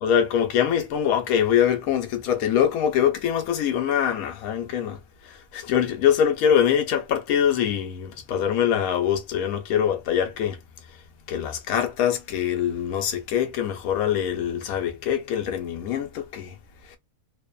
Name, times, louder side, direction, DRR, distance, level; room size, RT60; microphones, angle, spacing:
voice 1, 0.0-5.0 5.2-10.6 11.3-16.5 16.9-17.0, left 9 dB, 75° left, 1.0 m, -23 dB
2.8 x 2.0 x 2.3 m
omnidirectional pair, 1.6 m